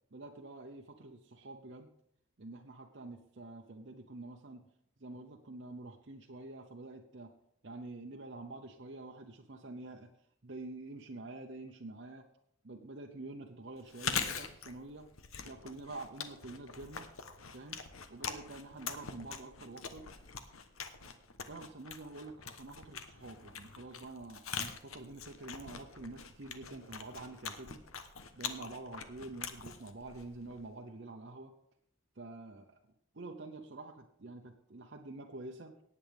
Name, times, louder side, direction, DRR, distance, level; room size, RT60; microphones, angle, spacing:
voice 1, 0.1-1.9 2.4-4.7 5.0-7.3 7.6-10.2 10.4-12.3 12.6-15.1 15.4-17.1 17.5-17.8 18.1-20.1 21.5-27.8 28.3-31.5 32.2-32.8 33.1-35.7, right 2 dB, 55° right, 1 dB, 0.8 m, -47 dB
Chewing mastication, 13.8-30.7, left 6 dB, 90° left, 1.1 m, -43 dB
18.0 x 8.6 x 3.5 m, 0.72 s
head